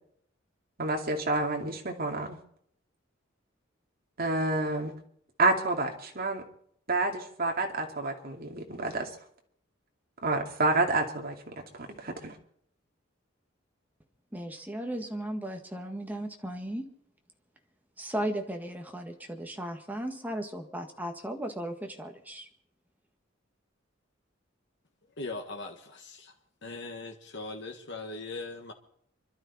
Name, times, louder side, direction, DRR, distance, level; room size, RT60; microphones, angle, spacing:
voice 1, 0.8-2.4 4.2-4.9 5.4-6.4 6.9-9.1 10.2-11.3 11.7-12.3, right 2 dB, 50° right, 2 dB, 2.4 m, -29 dB
voice 2, 14.3-16.9 18.0-22.5, right 1 dB, 10° right, 3 dB, 1.7 m, -36 dB
voice 3, 25.2-26.3 26.6-28.7, left 3 dB, 65° left, 1 dB, 1.7 m, -40 dB
26.0 x 12.5 x 4.2 m, 0.67 s
head